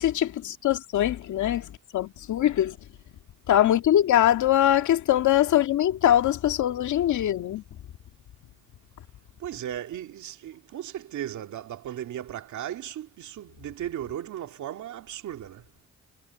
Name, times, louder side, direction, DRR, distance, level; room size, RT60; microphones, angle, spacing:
voice 1, 0.0-2.8 3.5-7.6, left 12 dB, 75° left, 2.2 m, -22 dB
voice 2, 9.4-15.7, right 11 dB, 75° right, 2.5 m, -36 dB
cardioid pair, 90°, 30 cm